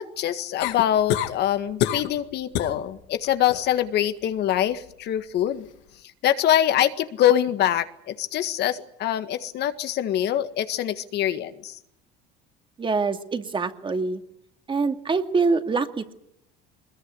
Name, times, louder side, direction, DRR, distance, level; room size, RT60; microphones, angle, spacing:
voice 1, 0.0-5.7 6.2-11.8, left 11 dB, 60° left, 10 dB, 1.8 m, -24 dB
sound 1, 0.6-1.4 1.8-2.2 2.5-2.8 3.2-3.7 5.5-5.6, left 12 dB, 75° left, 2.1 m, -26 dB
voice 2, 12.8-14.2 14.7-16.1, right 4 dB, 25° right, 7 dB, 2.3 m, -25 dB
22.0 x 21.0 x 9.7 m, 0.79 s
supercardioid pair, 105°, 20 cm